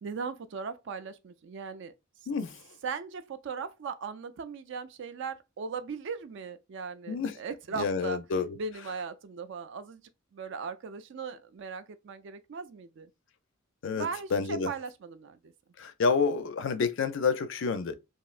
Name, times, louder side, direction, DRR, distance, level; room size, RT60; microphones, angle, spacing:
voice 1, 0.0-1.9 2.8-8.2 8.6-10.0 10.3-13.1 13.9-15.5, right 5 dB, 60° right, 0.4 m, -38 dB
voice 2, 2.3-2.6 7.1-7.3 7.7-8.5 13.8-14.1 14.3-14.7 15.8-17.9, left 5 dB, 65° left, 0.4 m, -28 dB
3.1 x 2.7 x 2.4 m
head